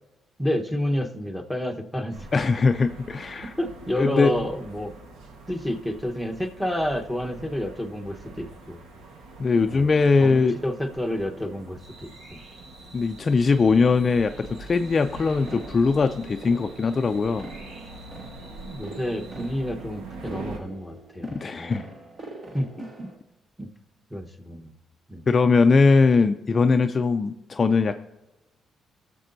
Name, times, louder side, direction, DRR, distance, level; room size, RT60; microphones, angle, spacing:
voice 1, 0.4-2.4 3.6-4.9 5.5-8.8 9.7-12.4 18.6-21.8 22.5-23.1 23.6-23.7 24.1-24.7 25.1-25.2, left 1 dB, ahead, 3 dB, 1.1 m, -30 dB
Downtown Quebec City - lockdown, 2.1-20.6, right 2 dB, 90° right, 1.4 m, -44 dB
voice 2, 2.3-3.5 4.0-4.3 9.4-10.5 12.9-17.5 21.3-21.8 25.3-27.9, left 4 dB, 35° left, 7 dB, 0.4 m, -20 dB
sound 1, 11.8-19.5, right 2 dB, 75° right, 2.3 m, -51 dB
sound 2, 15.5-23.2, right 2 dB, 40° right, 1.8 m, -44 dB
16.5 x 6.8 x 2.7 m, 1.0 s
cardioid pair, 90°, 0 cm